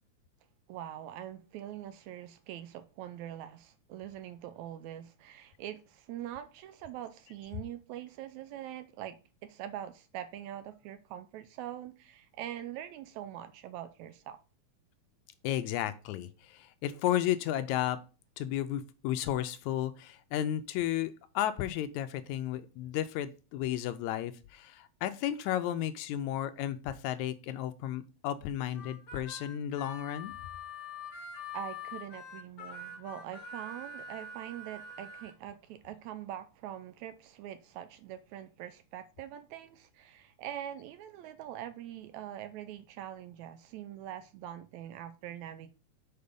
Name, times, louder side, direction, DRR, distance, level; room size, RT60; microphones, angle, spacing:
voice 1, 0.7-14.4 31.5-45.7, right 11 dB, 80° right, 1.9 m, -43 dB
voice 2, 15.4-18.0 18.4-30.3, left 12 dB, 80° left, 1.9 m, -33 dB
Harmonica, 28.7-35.3, left 3 dB, 60° left, 1.1 m, -44 dB
6.7 x 4.7 x 5.2 m
omnidirectional pair, 3.4 m